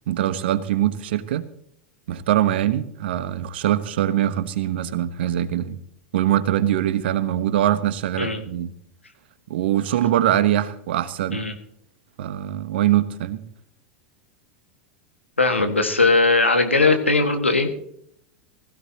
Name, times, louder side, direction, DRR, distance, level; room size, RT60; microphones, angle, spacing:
voice 1, 0.1-1.4 2.1-5.8 6.1-8.7 9.5-11.4 12.2-13.4, right 12 dB, 60° right, 13 dB, 1.1 m, -22 dB
voice 2, 15.4-17.7, left 3 dB, 90° left, 6 dB, 1.7 m, -19 dB
20.0 x 15.5 x 2.9 m, 0.69 s
figure-of-eight pair, 85°, 6 cm